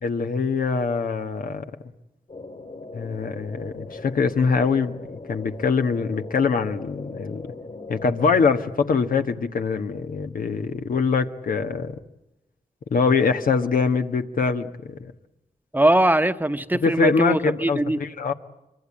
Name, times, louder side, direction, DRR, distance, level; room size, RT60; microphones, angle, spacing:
voice 1, 0.0-1.6 2.9-7.4 7.9-12.0 12.9-15.1 16.8-18.3, left 5 dB, 80° left, 7 dB, 1.3 m, -23 dB
sound 1, 2.3-8.6, left 3 dB, 55° left, 3.4 m, -39 dB
voice 2, 15.7-18.0, right 1 dB, 15° right, 10 dB, 1.0 m, -21 dB
25.0 x 24.0 x 8.7 m, 0.96 s
cardioid pair, 70°, 14 cm